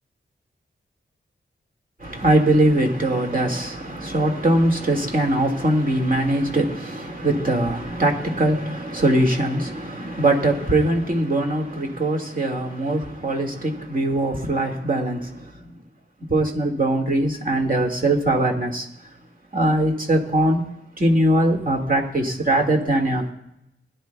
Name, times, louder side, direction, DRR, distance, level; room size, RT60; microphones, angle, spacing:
voice 1, 2.0-15.8 16.3-18.9 19.5-20.6 21.0-23.3, right 1 dB, 45° right, 1 dB, 2.0 m, -21 dB
21.0 x 11.5 x 2.3 m, 0.82 s
wide cardioid pair, 100°, 20 cm